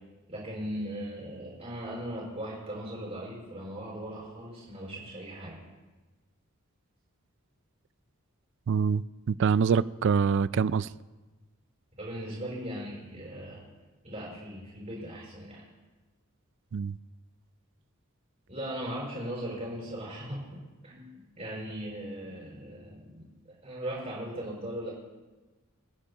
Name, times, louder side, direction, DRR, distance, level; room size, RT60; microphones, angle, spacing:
voice 1, 0.3-5.6 12.0-13.6 14.0-15.6 18.5-21.1 21.4-24.9, right 1 dB, 35° right, 5.6 m, -38 dB
voice 2, 8.7-10.9 16.7-16.9, right 6 dB, 55° right, 0.3 m, -25 dB
29.5 x 10.0 x 2.9 m
head